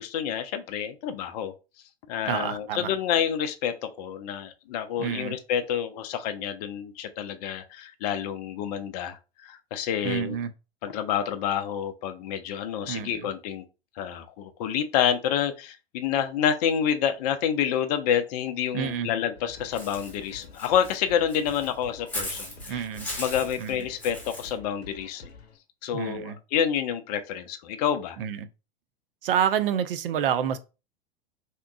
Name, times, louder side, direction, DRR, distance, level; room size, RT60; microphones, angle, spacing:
voice 1, 0.0-1.5 2.1-10.4 10.8-13.6 14.0-22.9 23.2-25.3 25.8-28.2, left 9 dB, 40° left, 0.4 m, -28 dB
voice 2, 2.2-2.9 5.0-5.4 10.0-10.5 12.9-13.3 18.7-19.1 22.7-23.1 23.6-23.7 25.9-26.4 28.2-28.5 29.2-30.6, right 8 dB, 60° right, 0.5 m, -28 dB
sound 1, 19.3-25.6, left 3 dB, 80° left, 0.7 m, -48 dB
Walk footsteps / Bird, 19.7-24.5, left 1 dB, 5° left, 1.2 m, -38 dB
3.4 x 2.9 x 2.2 m
figure-of-eight pair, 95°, 31 cm